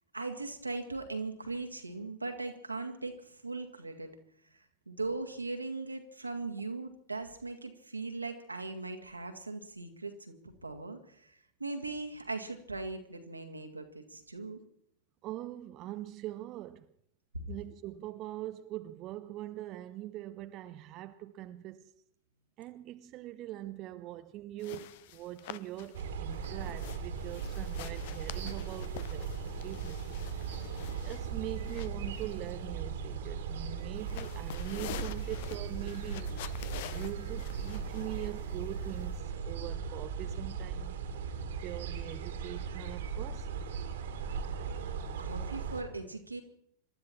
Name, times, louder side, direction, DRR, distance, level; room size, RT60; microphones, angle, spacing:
voice 1, 0.1-4.2 4.5-14.6 17.3-17.5 45.2-46.4, right 3 dB, 85° right, 2.0 m, -39 dB
voice 2, 15.2-16.9 17.5-21.9 22.6-29.3 29.6-41.0 41.6-43.5, right 14 dB, 35° right, 0.7 m, -43 dB
sound 1, 24.6-39.2, left 12 dB, 50° left, 0.8 m, -48 dB
sound 2, 25.9-45.8, right 6 dB, 60° right, 2.1 m, -38 dB
26.5 x 12.5 x 4.4 m
figure-of-eight pair, 90°, 0 cm